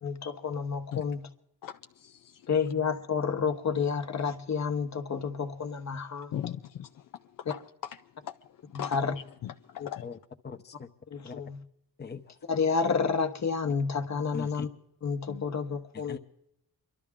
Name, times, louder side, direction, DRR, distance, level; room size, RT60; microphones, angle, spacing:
voice 1, 0.0-1.3 2.5-6.3 8.7-9.1 9.8-9.9 11.1-11.6 12.5-14.7 15.0-16.2, left 5 dB, 55° left, 1.3 m, -30 dB
voice 2, 1.6-2.5 6.3-9.0 9.4-10.1 15.3-15.4, left 10 dB, 75° left, 0.6 m, -40 dB
voice 3, 10.4-10.9 11.2-11.3 12.0-12.2 14.3-14.7 16.1-16.2, left 5 dB, 30° left, 0.8 m, -40 dB
28.5 x 12.0 x 3.6 m
cardioid pair, 90°, 33 cm